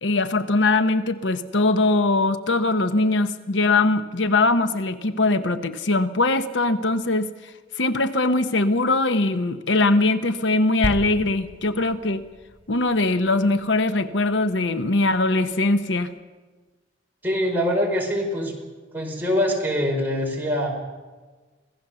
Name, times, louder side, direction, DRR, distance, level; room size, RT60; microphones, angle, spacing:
voice 1, 0.0-12.2 12.7-16.1, left 2 dB, 75° left, 11 dB, 1.0 m, -21 dB
sound 1, 10.8-14.4 15.0-15.1, right 1 dB, 75° right, 1.6 m, -35 dB
voice 2, 17.2-18.5 18.9-20.7, equal, 10° right, -1 dB, 5.0 m, -23 dB
26.0 x 17.0 x 7.0 m, 1.3 s
head